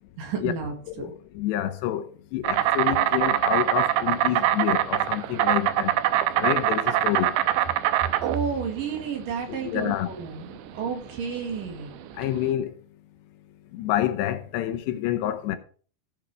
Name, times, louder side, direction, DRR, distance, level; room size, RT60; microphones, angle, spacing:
voice 1, 0.2-1.1 8.2-11.9, right 6 dB, 55° right, 3.4 m, -31 dB
voice 2, 1.0-5.9 6.4-7.3 9.6-10.1 12.2-12.8 13.7-15.6, left 12 dB, 80° left, 3.0 m, -28 dB
Insect, 2.4-12.4, right 13 dB, 85° right, 3.1 m, -24 dB
15.5 x 6.3 x 4.9 m
omnidirectional pair, 5.0 m